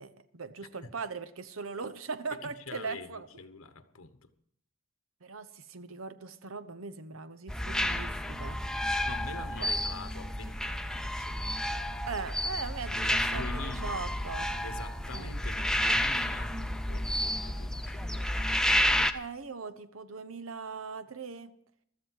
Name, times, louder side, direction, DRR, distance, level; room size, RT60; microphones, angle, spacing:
voice 1, 0.0-3.3 5.2-8.6 9.6-9.7 12.1-14.5 15.1-15.3 19.1-21.5, right 4 dB, 75° right, 0.9 m, -40 dB
voice 2, 2.4-4.3 9.0-12.1 12.9-14.2 14.6-16.6 16.9-18.5, left 4 dB, 90° left, 1.2 m, -45 dB
sound 1, 7.5-19.1, left 1 dB, 5° left, 0.6 m, -31 dB
15.5 x 13.0 x 4.7 m
head